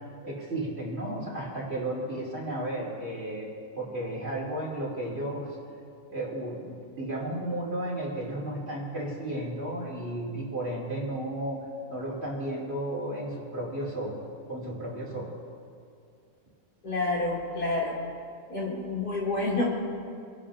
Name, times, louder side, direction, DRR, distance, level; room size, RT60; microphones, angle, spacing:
voice 1, 0.2-3.5 3.8-5.5 6.1-11.6 11.9-14.2 14.5-15.3, right 1 dB, 45° right, -5 dB, 3.5 m, -33 dB
voice 2, 16.8-18.0 18.5-19.7, left 2 dB, 85° left, -6 dB, 3.7 m, -28 dB
29.0 x 10.5 x 2.8 m, 2.4 s
omnidirectional pair, 1.6 m